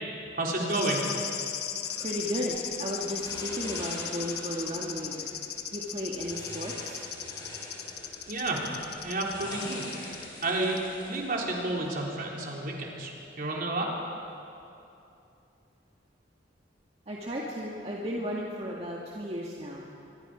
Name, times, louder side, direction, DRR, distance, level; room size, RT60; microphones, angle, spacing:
voice 1, 0.4-1.0 8.3-8.6 9.0-9.8 10.4-10.8 11.1-13.9, right 2 dB, 55° right, -2 dB, 3.6 m, -30 dB
sound 1, 0.7-10.5 10.8-10.9, left 9 dB, 60° left, 1.2 m, -37 dB
sound 2, 1.8-11.9, left 1 dB, 25° left, 5.2 m, -44 dB
voice 2, 2.0-5.3 5.7-7.0 17.1-19.8, equal, 35° right, -3 dB, 1.9 m, -34 dB
25.0 x 22.0 x 5.1 m, 2.7 s
head